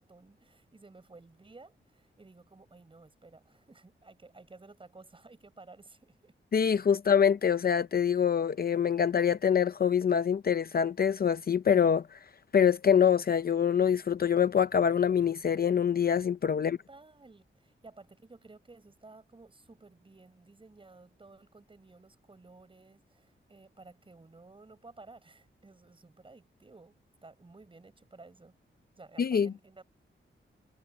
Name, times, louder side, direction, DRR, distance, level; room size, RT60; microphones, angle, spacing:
voice 1, 0.0-6.3 16.6-28.6 29.0-29.8, right 3 dB, 25° right, 5.8 m, -54 dB
voice 2, 6.5-12.2 12.5-16.8 29.2-29.5, left 7 dB, 50° left, 0.5 m, -25 dB
wide cardioid pair, 165°, 21 cm